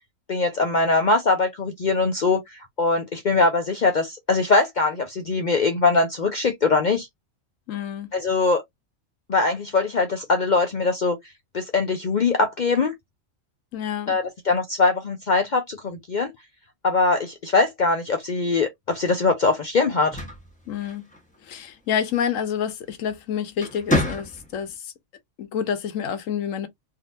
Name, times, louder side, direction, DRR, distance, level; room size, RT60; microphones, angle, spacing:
voice 1, 0.3-7.1 8.1-8.6 9.3-11.2 11.5-12.9 14.1-16.3 16.8-20.2, left 3 dB, 50° left, 0.6 m, -22 dB
voice 2, 7.7-8.1 13.7-14.2 20.7-21.1 21.4-24.9 25.4-26.7, left 8 dB, 85° left, 1.1 m, -28 dB
sound 1, 19.9-21.4 22.9-23.1 23.5-24.7, left 1 dB, 5° left, 1.0 m, -28 dB
3.6 x 2.8 x 2.5 m
omnidirectional pair, 1.3 m